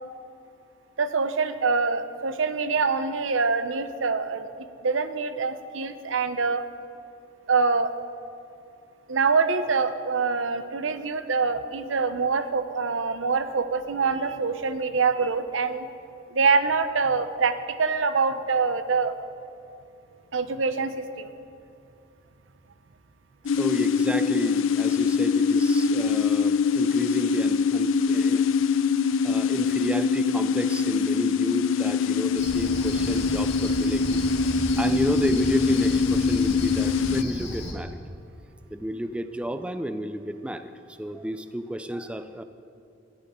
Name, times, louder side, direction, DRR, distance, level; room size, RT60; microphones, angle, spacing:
voice 1, 1.0-4.5 4.8-6.6 7.5-7.9 9.1-15.9 16.3-19.1 20.3-21.3, right 4 dB, 80° right, 11 dB, 0.7 m, -25 dB
sound 1, 23.5-37.2, left 5 dB, 80° left, 0.4 m, -23 dB
voice 2, 23.6-28.5 29.2-34.2 34.8-38.0 38.7-42.4, equal, 5° right, 10 dB, 0.4 m, -31 dB
Cricket, 32.4-37.7, left 1 dB, 60° left, 2.2 m, -34 dB
18.5 x 13.0 x 3.7 m, 2.5 s
head